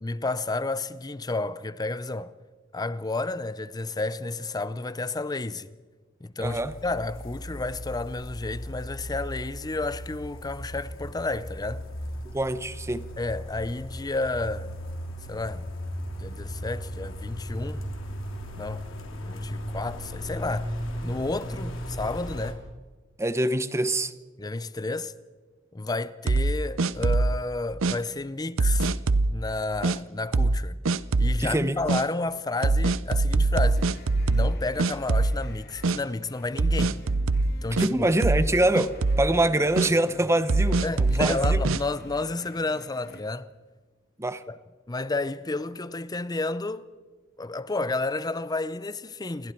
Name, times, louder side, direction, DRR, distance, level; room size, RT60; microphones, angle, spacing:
voice 1, 0.0-2.3 2.7-5.7 6.2-11.8 13.2-14.7 15.3-15.7 16.2-17.9 18.6-18.9 19.2-20.8 21.0-22.6 24.4-25.1 25.7-28.9 29.3-30.8 31.2-33.9 34.3-37.0 37.6-38.1 40.8-43.5 44.5-44.6 44.9-46.9 47.4-49.5, left 2 dB, 20° left, 0.6 m, -31 dB
sound 1, 6.4-22.5, equal, 80° left, 3.2 m, -37 dB
voice 2, 6.4-6.7 12.3-13.1 23.2-24.1 31.4-31.8 37.8-41.6 44.2-44.4, right 1 dB, 15° right, 0.9 m, -24 dB
sound 2, 26.3-27.4 27.8-28.0 28.6-29.3 29.8-30.0 30.3-30.6 30.9-31.4 31.9-32.0 32.6-34.5 34.8-35.5 35.8-36.0 36.6-37.9 38.2-38.5 38.8-39.3 39.8-39.9 40.5-41.8, right 3 dB, 85° right, 0.7 m, -23 dB
sound 3, 33.7-43.2, left 1 dB, 55° left, 2.5 m, -48 dB
28.5 x 21.0 x 4.5 m
head